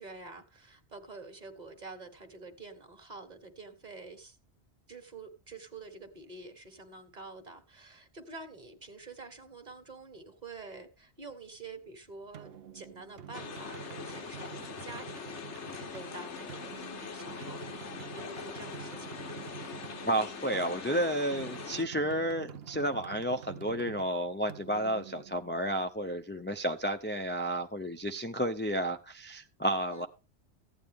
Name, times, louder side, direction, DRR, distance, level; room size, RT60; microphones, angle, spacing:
voice 1, 0.0-4.4 4.9-15.5 15.9-19.3 29.9-30.1, right 3 dB, 40° right, 1.6 m, -48 dB
sound 1, 12.3-25.9, right 9 dB, 65° right, 0.9 m, -48 dB
sound 2, 13.3-21.8, left 6 dB, 90° left, 1.4 m, -42 dB
voice 2, 20.0-30.1, right 1 dB, 15° left, 0.4 m, -31 dB
15.0 x 9.2 x 3.6 m
omnidirectional pair, 1.1 m